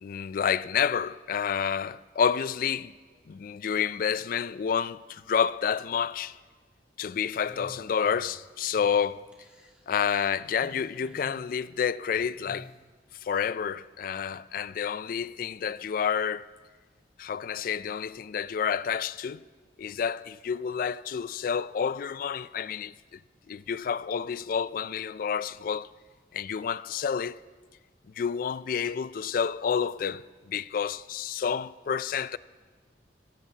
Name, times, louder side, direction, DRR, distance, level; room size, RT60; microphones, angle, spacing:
voice 1, 0.0-2.9 3.3-6.4 7.0-9.2 9.9-12.7 13.1-16.5 17.2-19.4 19.8-23.2 23.5-25.9 26.3-27.4 28.2-32.4, left 7 dB, 50° left, 0.3 m, -29 dB
sound 1, 7.4-8.3 8.7-9.0 9.3-9.8 10.5-11.4 12.3-12.7, left 1 dB, 5° right, 2.1 m, -49 dB
22.5 x 17.5 x 2.8 m
head